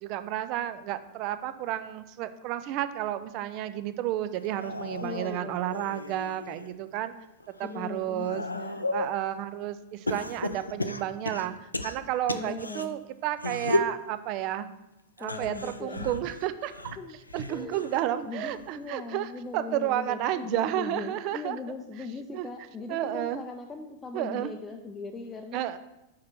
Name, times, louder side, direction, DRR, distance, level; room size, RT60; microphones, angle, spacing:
voice 1, 0.0-7.1 7.6-8.4 8.9-14.7 15.2-17.0 17.3-21.6 22.3-22.5 22.9-23.4 24.1-24.5 25.5-25.8, right 12 dB, 40° right, 12 dB, 0.5 m, -31 dB
sound 1, 4.4-6.7 7.2-9.2 10.1-12.9 13.4-14.0 15.2-18.1 18.4-18.8 20.0-20.1, left 2 dB, 80° left, 0.4 m, -34 dB
voice 2, 5.0-5.9 7.6-8.8 12.3-13.0 15.2-16.2 17.0-17.2 17.5-17.9 18.3-25.6, left 4 dB, 15° left, 4 dB, 0.5 m, -39 dB
5.5 x 4.9 x 6.0 m, 0.93 s
figure-of-eight pair, 90°, 0 cm